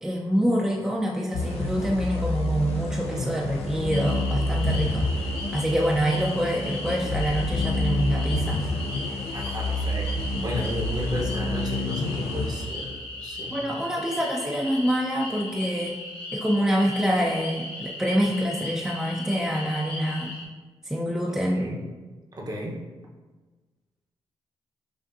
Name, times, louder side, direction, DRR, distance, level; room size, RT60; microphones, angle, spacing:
voice 1, 0.0-5.1 5.5-8.7 13.5-16.0 16.3-20.3 20.8-21.7, equal, 5° right, -2 dB, 0.5 m, -26 dB
sound 1, 1.3-13.2, left 1 dB, 85° left, 0.5 m, -28 dB
sound 2, 3.9-20.4, left 2 dB, 55° left, 0.9 m, -37 dB
voice 2, 9.3-13.5 21.5-21.8 22.4-22.8, equal, 40° right, -2 dB, 0.9 m, -33 dB
5.1 x 2.5 x 2.6 m, 1.3 s
cardioid pair, 55°, 10 cm